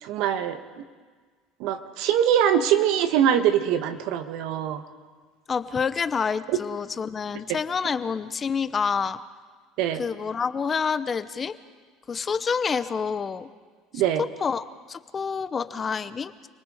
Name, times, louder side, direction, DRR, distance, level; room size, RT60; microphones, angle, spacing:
voice 1, 0.0-0.8 1.6-4.8 6.5-6.6 7.5-7.6 9.8-10.0 13.9-14.2, right 9 dB, 70° right, 9 dB, 1.4 m, -23 dB
voice 2, 5.5-9.2 10.0-11.6 12.1-13.5 14.4-16.5, left 6 dB, 30° left, 13 dB, 0.9 m, -28 dB
28.0 x 19.0 x 5.0 m, 1.5 s
supercardioid pair, 90°, 0 cm